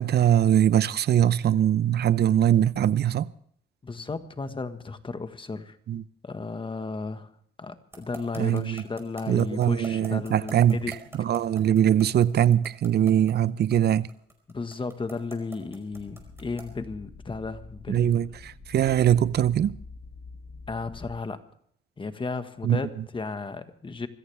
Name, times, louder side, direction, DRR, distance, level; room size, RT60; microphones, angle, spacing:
voice 1, 0.0-3.3 5.9-6.0 8.4-8.8 9.3-14.1 17.9-19.8 22.6-22.8, right 10 dB, 55° right, 0.6 m, -22 dB
voice 2, 3.8-5.8 6.2-7.3 7.6-10.9 14.5-18.3 20.7-21.4 22.0-24.1, left 4 dB, 25° left, 1.5 m, -34 dB
sound 1, 7.9-16.8, right 2 dB, 10° right, 4.9 m, -44 dB
sound 2, 15.9-21.2, left 4 dB, 60° left, 4.7 m, -45 dB
25.0 x 14.5 x 3.4 m
cardioid pair, 90°, 20 cm